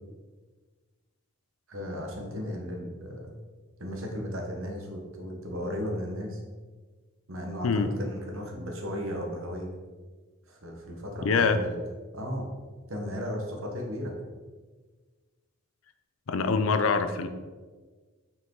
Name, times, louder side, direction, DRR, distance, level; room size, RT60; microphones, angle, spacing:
voice 1, 1.7-3.3 3.8-6.4 7.3-9.8 10.5-11.8 12.1-12.5 12.9-14.1, equal, 70° right, 1 dB, 1.2 m, -35 dB
voice 2, 11.2-11.6 16.3-17.3, left 4 dB, 70° left, 9 dB, 0.5 m, -24 dB
5.9 x 4.8 x 3.8 m, 1.4 s
head